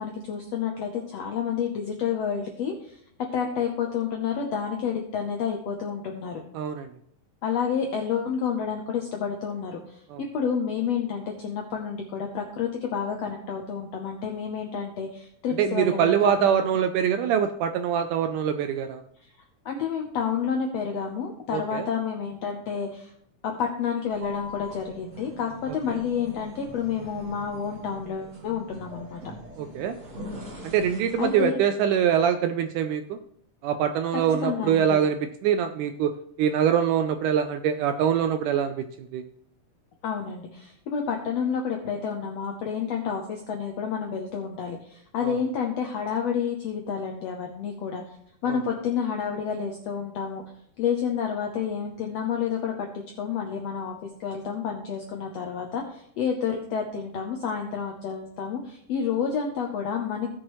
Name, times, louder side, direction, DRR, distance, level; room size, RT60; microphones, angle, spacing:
voice 1, 0.0-3.0 3.3-6.4 7.4-16.9 19.6-23.1 23.4-29.2 31.2-31.6 34.4-35.1 40.0-48.2 48.4-50.4 50.8-60.3, left 7 dB, 75° left, 2 dB, 1.5 m, -29 dB
voice 2, 6.6-6.9 10.1-10.2 15.6-19.0 21.5-21.8 25.9-26.0 29.6-29.9 30.6-33.2 33.6-35.2 35.4-36.1 36.4-38.9 39.1-39.2 45.2-45.3, right 8 dB, 80° right, 8 dB, 1.9 m, -24 dB
sound 1, 24.0-31.5, equal, 30° right, 1.5 m, -42 dB
16.5 x 6.2 x 3.1 m, 0.68 s
omnidirectional pair, 4.1 m